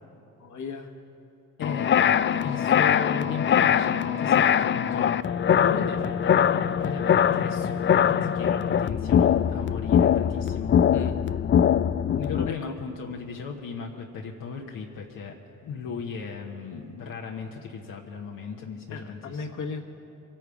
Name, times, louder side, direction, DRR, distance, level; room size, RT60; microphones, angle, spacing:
voice 1, 0.4-1.0 10.9-11.2 12.5-12.8 18.9-19.8, left 4 dB, 60° left, 4 dB, 1.4 m, -36 dB
voice 2, 1.6-1.9 2.4-5.1 5.4-10.7 12.1-15.3 15.6-19.5, left 5 dB, 75° left, -1 dB, 1.2 m, -36 dB
sound 1, 1.6-12.5, left 9 dB, 35° left, 0.4 m, -22 dB
24.0 x 9.0 x 4.9 m, 2.9 s
supercardioid pair, 60°, 34 cm